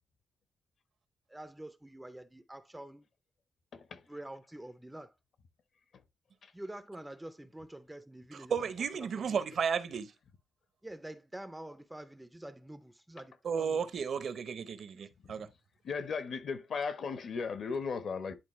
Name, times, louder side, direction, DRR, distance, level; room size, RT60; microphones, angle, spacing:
voice 1, 1.3-3.1 4.1-5.1 6.5-9.4 10.8-13.8 14.9-15.0, right 1 dB, 5° right, 0.5 m, -47 dB
voice 2, 3.7-4.0 6.4-6.5 15.2-15.3 15.8-18.4, left 5 dB, 55° left, 0.9 m, -36 dB
voice 3, 8.5-10.1 13.4-15.5, right 6 dB, 55° right, 0.7 m, -33 dB
10.5 x 3.9 x 3.1 m
wide cardioid pair, 160°, 0 cm